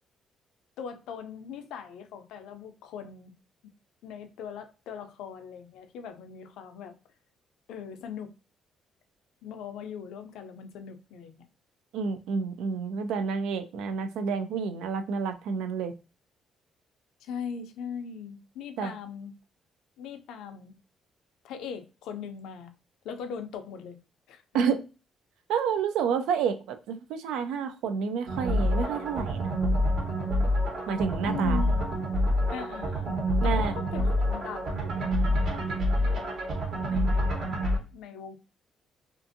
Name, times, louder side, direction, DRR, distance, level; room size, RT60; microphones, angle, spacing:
voice 1, 0.8-3.3 4.0-7.0 7.7-8.3 9.4-11.5 17.2-19.3 20.0-20.7 21.4-22.7 23.0-24.0 24.3-24.4 31.2-31.9 32.5-36.4 36.9-38.4, left 7 dB, 85° left, 0.4 m, -40 dB
voice 2, 11.9-15.9 18.8-18.9 24.5-24.8 25.5-29.5 30.9-31.6 33.4-33.7, right 6 dB, 85° right, 0.3 m, -29 dB
sound 1, 28.3-37.8, equal, 60° right, 1.1 m, -27 dB
2.5 x 2.4 x 2.5 m
cardioid pair, 90°, 0 cm